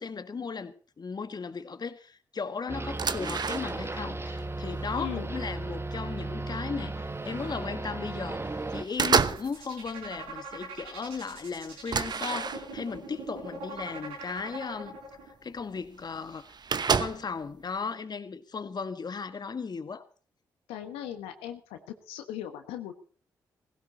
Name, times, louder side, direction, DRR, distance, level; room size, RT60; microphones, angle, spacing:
voice 1, 0.0-15.0 15.2-16.6 16.9-20.1, left 5 dB, 45° left, 1.6 m, -36 dB
sound 1, 2.7-8.8, right 2 dB, 25° right, 1.4 m, -35 dB
sound 2, 2.8-4.0 4.4-5.6 6.2-6.3 6.7-7.6 8.0-8.4 8.7-9.6 9.9-10.3 10.8-10.9 11.2-11.3 11.9-13.0 13.8-13.9 14.4-14.5 15.6-15.7 15.8-15.9 16.1-17.4, right 5 dB, 50° right, 0.9 m, -30 dB
voice 2, 5.0-5.3 20.7-22.9, left 11 dB, 85° left, 1.3 m, -38 dB
sound 3, 9.2-15.3, right 3 dB, 85° right, 5.3 m, -41 dB
16.5 x 16.5 x 4.3 m
hypercardioid pair, 40°, 9 cm